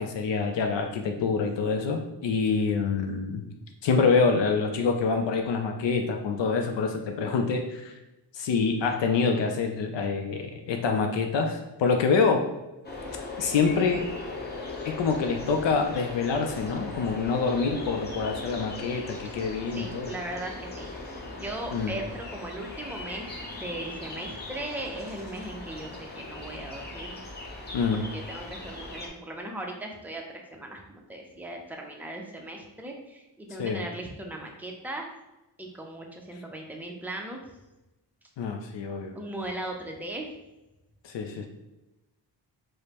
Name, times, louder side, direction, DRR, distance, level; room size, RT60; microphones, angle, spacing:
voice 1, 0.0-3.4 3.8-7.9 8.3-12.5 13.4-14.1 14.9-20.1 21.7-21.9 27.7-28.0 33.6-33.8 38.4-39.2 41.0-41.5, left 5 dB, 70° left, 4 dB, 0.5 m, -26 dB
sound 1, 12.8-29.1, left 2 dB, 25° left, 0.7 m, -39 dB
voice 2, 19.7-27.2 28.1-35.1 35.6-37.4 39.1-40.3, right 1 dB, 5° right, 1 dB, 0.4 m, -38 dB
4.9 x 2.1 x 2.9 m, 0.99 s
wide cardioid pair, 110°, 45 cm